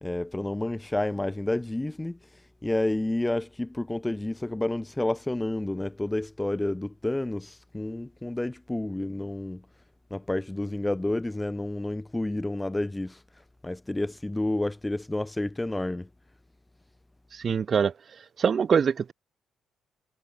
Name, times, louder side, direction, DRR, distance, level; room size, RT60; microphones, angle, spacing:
voice 1, 0.0-2.2 2.6-9.6 10.1-13.2 13.6-16.1, left 1 dB, 10° left, 1.7 m, -30 dB
voice 2, 17.4-17.9 18.4-19.1, right 6 dB, 45° right, 3.2 m, -23 dB
cardioid pair, 90°, 0 cm